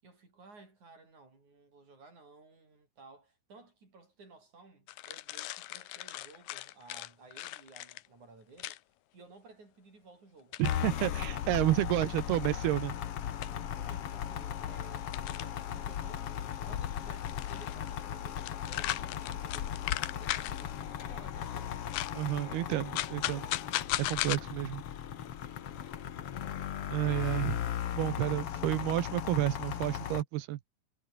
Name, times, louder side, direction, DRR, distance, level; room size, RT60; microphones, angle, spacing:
voice 1, 0.0-8.8 9.1-11.3 13.8-15.1 15.4-19.7 20.1-21.9 23.1-23.9, right 3 dB, 50° right, 9.4 m, -56 dB
sound 1, 4.9-8.1 8.6-8.8 10.5-10.8 12.2-12.3 13.4-13.5 15.1-15.6 17.2-18.0 18.3-20.6 21.9-22.1 23.0-24.4, left 16 dB, 90° left, 3.0 m, -37 dB
sound 2, 10.6-30.2, left 10 dB, 55° left, 1.7 m, -37 dB
voice 2, 10.6-12.9 22.2-23.4 24.0-24.8 26.9-27.6 28.0-30.6, right 15 dB, 90° right, 3.1 m, -30 dB
omnidirectional pair, 4.4 m